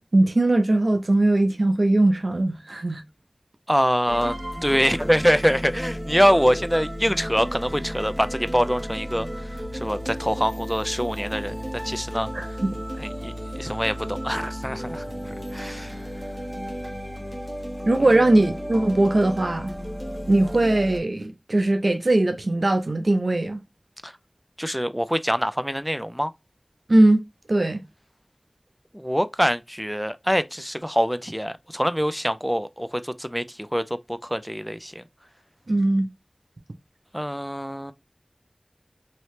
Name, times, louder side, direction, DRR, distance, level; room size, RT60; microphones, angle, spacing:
voice 1, 0.0-3.0 12.3-12.8 17.9-19.7 20.3-23.6 26.9-27.2 27.5-27.8 35.7-36.1, right 2 dB, 80° right, 0.5 m, -20 dB
voice 2, 3.7-11.5 11.8-12.6 13.0-16.0 18.0-18.1 24.0-24.1 24.6-26.3 28.9-35.0 37.1-37.9, equal, ahead, 0.4 m, -25 dB
sound 1, 4.1-21.0, equal, 35° right, 0.9 m, -34 dB
3.0 x 2.8 x 3.1 m
wide cardioid pair, 50°, 0 cm